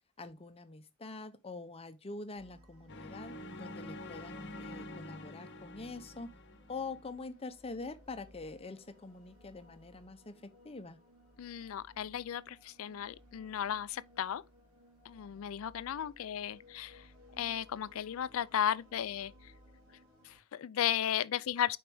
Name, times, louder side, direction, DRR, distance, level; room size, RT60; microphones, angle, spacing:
voice 1, 0.2-6.3 6.7-11.0, left 3 dB, 30° left, 0.6 m, -45 dB
sound 1, 2.3-20.4, equal, 85° right, 2.8 m, -61 dB
sound 2, 2.9-7.1, left 1 dB, 60° left, 0.9 m, -47 dB
voice 2, 11.4-14.4 15.1-17.1 17.4-19.5 20.2-21.8, left 10 dB, 75° left, 0.4 m, -35 dB
6.0 x 4.4 x 3.5 m
head